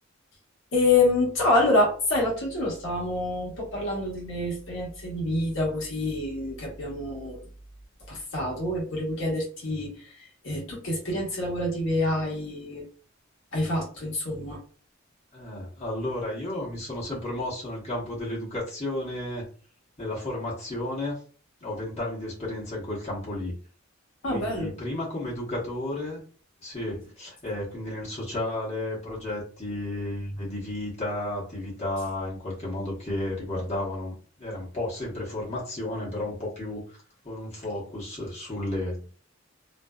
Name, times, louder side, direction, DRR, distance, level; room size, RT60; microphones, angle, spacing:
voice 1, 0.7-7.5 8.1-12.9 13.5-14.6 24.2-24.7, left 2 dB, 65° left, -3 dB, 1.0 m, -27 dB
voice 2, 15.3-19.5 20.0-21.2 21.6-23.6 24.3-26.2 26.6-37.0 37.2-39.1, left 1 dB, 30° left, -6 dB, 1.1 m, -33 dB
2.5 x 2.2 x 2.2 m, 0.39 s
head